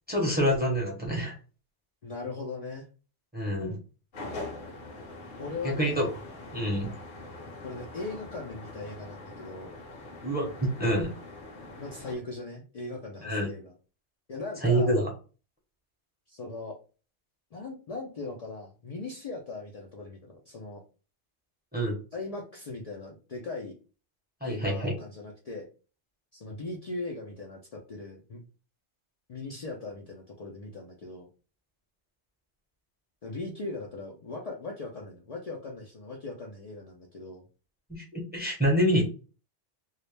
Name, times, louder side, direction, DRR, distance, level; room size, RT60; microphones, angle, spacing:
voice 1, 0.1-1.3 3.3-3.8 5.6-6.1 6.5-6.9 10.2-11.1 13.2-13.5 14.6-15.0 21.7-21.9 24.4-24.9 37.9-39.1, equal, 10° right, -3 dB, 0.6 m, -26 dB
voice 2, 2.0-2.9 5.4-6.1 7.6-9.8 11.8-13.7 14.3-15.0 16.3-16.8 17.5-20.8 22.1-23.7 24.4-25.7 26.3-28.4 29.3-31.3 33.2-37.4, left 3 dB, 75° left, -1 dB, 0.3 m, -39 dB
sound 1, 4.1-12.2, left 2 dB, 50° left, 0.7 m, -43 dB
2.3 x 2.0 x 3.1 m, 0.35 s
omnidirectional pair, 1.2 m